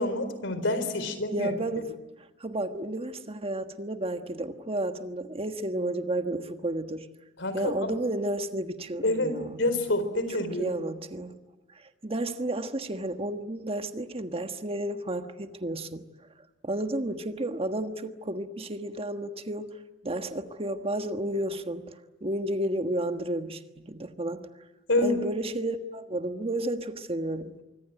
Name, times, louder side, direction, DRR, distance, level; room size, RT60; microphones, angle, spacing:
voice 1, 0.0-1.5 7.4-8.0 9.0-10.7 24.9-25.2, left 2 dB, 70° left, 4.2 m, -27 dB
voice 2, 1.3-1.9 2.4-7.1 7.5-9.6 10.4-11.3 11.7-16.1 16.6-19.8 20.0-24.5 25.0-27.5, right 1 dB, 30° right, 1.4 m, -32 dB
25.0 x 24.5 x 9.2 m
head